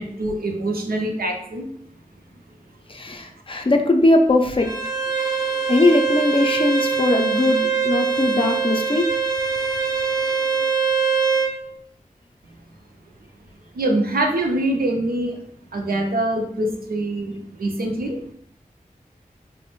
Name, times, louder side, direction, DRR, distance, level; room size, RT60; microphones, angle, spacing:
voice 1, 0.0-1.6 13.8-15.3 15.7-18.2, right 1 dB, 90° right, 2 dB, 0.5 m, -24 dB
voice 2, 2.9-4.7 5.7-9.1 10.0-10.4, left 2 dB, 35° left, 4 dB, 0.4 m, -20 dB
Bowed string instrument, 4.6-11.5, right 5 dB, 25° right, 0.5 m, -23 dB
3.1 x 2.0 x 3.0 m, 0.69 s
wide cardioid pair, 75°, 15 cm